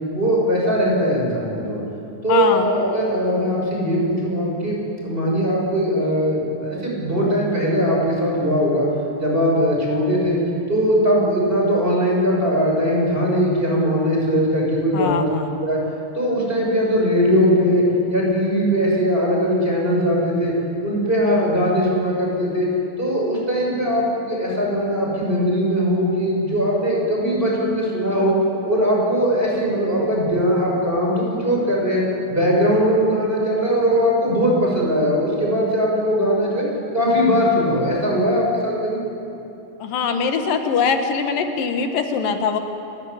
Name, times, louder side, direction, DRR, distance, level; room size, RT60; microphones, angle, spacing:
voice 1, 0.1-1.8 2.2-8.9 9.2-10.4 10.7-15.3 15.6-15.8 16.1-20.5 20.8-22.7 23.0-28.3 28.6-36.7 36.9-39.0, equal, 15° right, -3 dB, 6.6 m, -20 dB
voice 2, 2.3-2.7 14.9-15.6 39.8-42.6, left 6 dB, 85° left, 5 dB, 3.2 m, -22 dB
29.5 x 17.0 x 9.7 m, 2.9 s
omnidirectional pair, 3.8 m